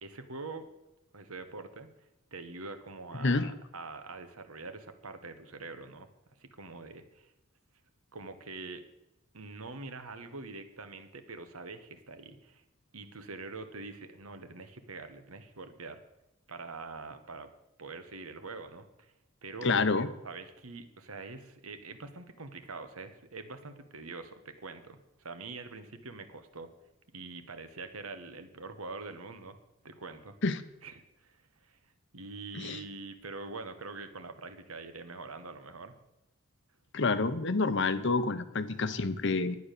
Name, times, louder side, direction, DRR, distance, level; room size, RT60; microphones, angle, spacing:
voice 1, 0.0-0.6 1.1-6.1 6.4-7.3 8.1-8.8 9.3-12.6 12.9-16.0 16.5-17.5 17.8-19.1 19.4-19.7 20.2-26.7 27.1-29.6 29.8-30.4 30.8-31.8 32.1-36.0, right 3 dB, 85° right, 8 dB, 1.4 m, -44 dB
voice 2, 3.2-3.5 19.6-20.1 30.4-30.6 32.5-32.8 36.9-39.6, left 3 dB, 55° left, 12 dB, 0.9 m, -28 dB
11.0 x 9.6 x 6.7 m, 0.93 s
head